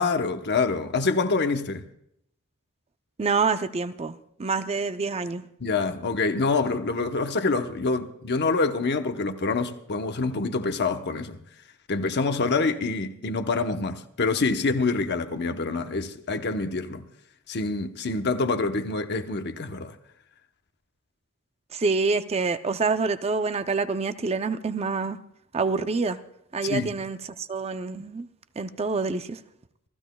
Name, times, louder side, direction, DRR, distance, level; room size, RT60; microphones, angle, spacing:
voice 1, 0.0-1.8 5.6-11.4 11.9-17.0 17.5-20.0 26.6-26.9, left 3 dB, 50° left, 0.9 m, -26 dB
voice 2, 3.2-5.4 21.7-25.2 25.5-26.2 26.5-28.3 28.6-29.4, right 4 dB, 30° right, 0.5 m, -27 dB
28.5 x 14.5 x 2.3 m
head